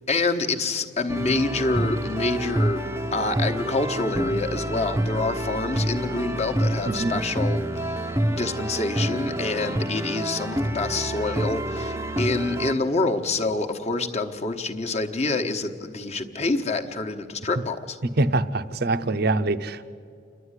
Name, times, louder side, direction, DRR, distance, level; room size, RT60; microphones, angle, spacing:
voice 1, 0.1-2.8 3.1-18.0, left 3 dB, 35° left, 4 dB, 1.1 m, -27 dB
sound 1, 1.1-12.7, right 1 dB, 15° right, 0.6 m, -27 dB
voice 2, 18.2-19.9, right 2 dB, 50° right, 11 dB, 0.7 m, -24 dB
28.5 x 11.5 x 9.8 m, 2.3 s
head